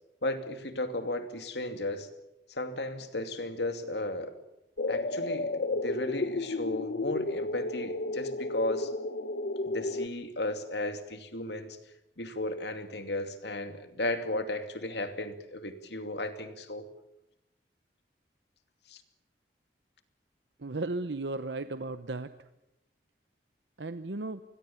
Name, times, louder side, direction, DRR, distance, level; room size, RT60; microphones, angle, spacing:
voice 1, 0.2-2.1 2.5-4.3 4.9-8.9 9.6-11.8 12.2-16.9 18.9-19.0, left 1 dB, 75° left, 8 dB, 2.6 m, -35 dB
sound 1, 4.8-10.1, left 2 dB, 60° left, 0.9 m, -32 dB
voice 2, 20.6-22.5 23.8-24.4, right 2 dB, 85° right, 11 dB, 0.9 m, -35 dB
28.0 x 21.5 x 7.2 m, 0.89 s
head